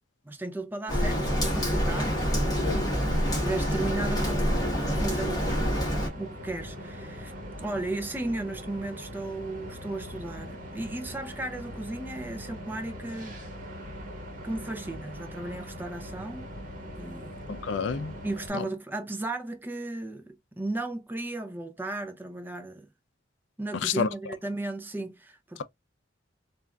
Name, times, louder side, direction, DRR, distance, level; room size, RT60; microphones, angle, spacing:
voice 1, 0.2-2.6 3.3-5.5 6.2-7.3 7.6-13.4 14.4-16.5 16.9-17.4 18.2-22.9 23.6-25.6, right 2 dB, 10° right, 0.5 m, -35 dB
Rain, 0.9-6.1, equal, 20° left, 1.2 m, -27 dB
sound 1, 1.2-18.5, equal, 40° right, 1.1 m, -41 dB
voice 2, 2.6-3.2 17.5-18.1 18.5-18.7 23.8-24.1, left 6 dB, 75° left, 0.4 m, -30 dB
3.3 x 2.4 x 2.3 m
head